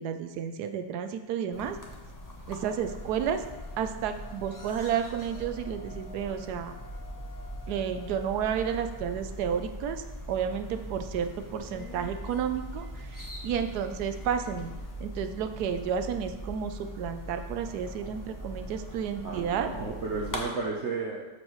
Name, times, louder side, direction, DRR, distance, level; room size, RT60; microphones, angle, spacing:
voice 1, 0.0-1.8 2.5-3.4 3.8-6.7 7.7-14.7 15.0-19.7, right 8 dB, 75° right, 8 dB, 1.1 m, -31 dB
sound 1, 1.5-20.4, equal, 20° left, 0.6 m, -41 dB
Trumpet, 2.6-9.1, left 6 dB, 45° left, 2.8 m, -53 dB
Subway metro underground, 11.1-15.2, left 3 dB, 70° left, 1.5 m, -51 dB
voice 2, 19.2-21.2, right 4 dB, 55° right, -2 dB, 0.9 m, -33 dB
12.5 x 4.8 x 3.1 m, 1.2 s
omnidirectional pair, 1.8 m